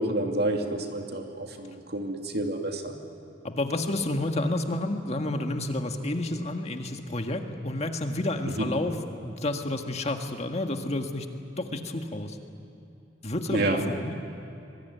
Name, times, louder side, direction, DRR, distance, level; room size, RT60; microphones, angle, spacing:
voice 1, 0.0-2.9 8.5-8.6 13.5-13.8, right 1 dB, 60° right, 3 dB, 2.6 m, -29 dB
voice 2, 3.4-9.0 9.2-11.3 11.6-12.4 13.2-14.1, left 1 dB, 35° left, 5 dB, 1.7 m, -30 dB
25.5 x 22.5 x 9.4 m, 2.8 s
head